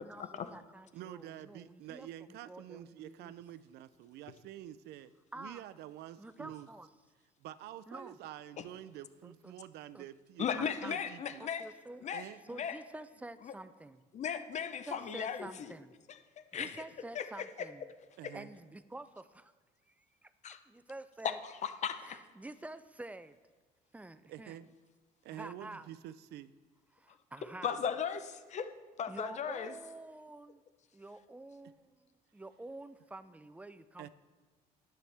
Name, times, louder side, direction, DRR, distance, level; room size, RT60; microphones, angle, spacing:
voice 1, 0.0-3.4 5.3-5.6 6.2-6.9 7.9-8.2 9.2-9.6 9.9-10.1 10.5-11.0 11.4-12.1 12.4-14.1 14.9-16.0 16.6-17.9 18.3-19.5 19.9-21.4 22.0-23.4 23.9-24.7 25.3-25.9 26.9-27.8 29.1-30.6 30.9-34.1, right 2 dB, 10° right, 13 dB, 0.3 m, -49 dB
voice 2, 0.9-6.7 7.4-11.4 12.1-12.4 18.2-18.5 24.3-24.7 25.2-26.5 34.0-34.1, right 12 dB, 75° right, 15 dB, 0.4 m, -48 dB
voice 3, 10.4-11.6 12.0-12.3 12.5-12.8 13.4-13.5 14.1-15.7 16.5-16.8 17.1-17.7 18.2-18.3 20.4-20.6 21.2-22.2 27.6-28.7 29.0-29.7, left 7 dB, 45° left, 10 dB, 0.6 m, -36 dB
10.5 x 7.8 x 3.4 m, 1.3 s
cardioid pair, 110°, 17 cm